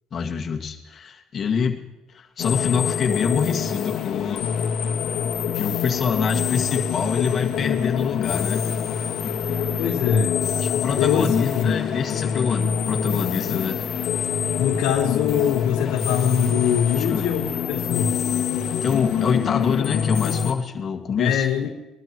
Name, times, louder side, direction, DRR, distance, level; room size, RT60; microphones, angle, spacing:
voice 1, 0.1-1.8 2.1-4.5 5.6-8.7 9.2-9.4 10.6-13.9 17.0-17.3 18.8-21.5, left 6 dB, 45° left, 2 dB, 1.9 m, -25 dB
sound 1, 2.4-20.5, left 7 dB, 65° left, 1.5 m, -25 dB
voice 2, 9.8-10.4 11.0-11.7 14.6-18.2 21.2-21.7, left 8 dB, 80° left, 0 dB, 1.3 m, -23 dB
22.0 x 12.0 x 3.1 m, 1.0 s
supercardioid pair, 90°, 0 cm